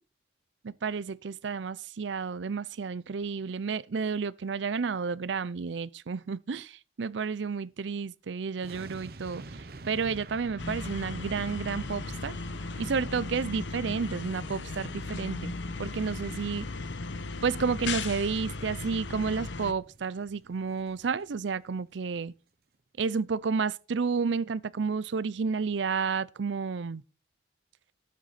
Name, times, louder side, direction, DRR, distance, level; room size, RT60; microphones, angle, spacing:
voice 1, 0.6-12.3 12.8-16.7 17.4-22.3 23.0-27.0, right 5 dB, 80° right, 0.5 m, -31 dB
sound 1, 8.6-21.8 22.0-22.2, right 2 dB, 55° right, 0.9 m, -49 dB
sound 2, 10.6-19.7, left 3 dB, 75° left, 1.0 m, -36 dB
12.0 x 9.2 x 4.2 m
head